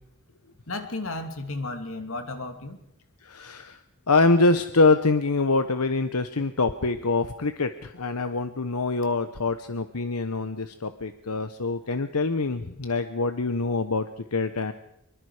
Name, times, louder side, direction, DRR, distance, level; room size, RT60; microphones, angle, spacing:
voice 1, 0.7-2.8, left 2 dB, 65° left, 6 dB, 2.7 m, -33 dB
voice 2, 3.2-3.8 4.1-14.7, left 3 dB, 85° left, 9 dB, 1.0 m, -25 dB
25.0 x 23.5 x 5.0 m, 0.78 s
head